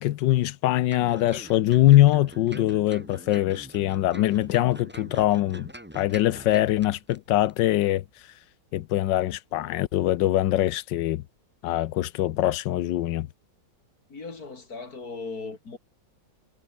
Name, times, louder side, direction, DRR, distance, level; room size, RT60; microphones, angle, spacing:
voice 1, 0.0-5.7 5.9-8.0 8.7-11.2 11.6-13.3, left 14 dB, 85° left, 1.4 m, -23 dB
sound 1, 0.9-7.2 7.5-7.6, equal, 5° right, 3.2 m, -43 dB
voice 2, 14.1-15.8, left 4 dB, 55° left, 3.5 m, -37 dB
omnidirectional pair, 1.9 m